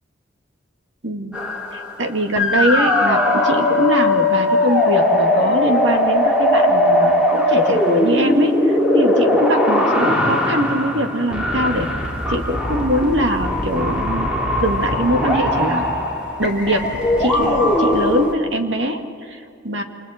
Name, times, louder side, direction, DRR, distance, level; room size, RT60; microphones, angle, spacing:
voice 1, 1.0-1.4 1.7-11.9 12.3-14.3 14.6-15.9 16.4-16.9 17.1-19.8, equal, 60° right, 4 dB, 2.2 m, -22 dB
sound 1, 1.3-2.0 2.4-18.3, left 1 dB, 5° right, 3.3 m, -19 dB
29.5 x 26.5 x 4.4 m, 2.4 s
head